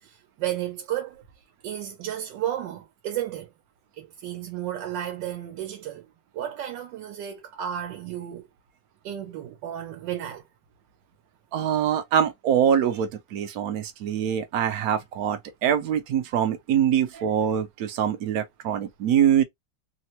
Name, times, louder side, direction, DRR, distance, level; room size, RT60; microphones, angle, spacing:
voice 1, 0.0-1.2 1.6-3.5 4.0-6.1 6.3-8.5 9.0-10.4 12.9-13.0 17.1-17.2, right 11 dB, 85° right, 1.3 m, -33 dB
voice 2, 11.5-19.4, right 9 dB, 70° right, 0.9 m, -24 dB
3.4 x 2.0 x 2.8 m
omnidirectional pair, 1.9 m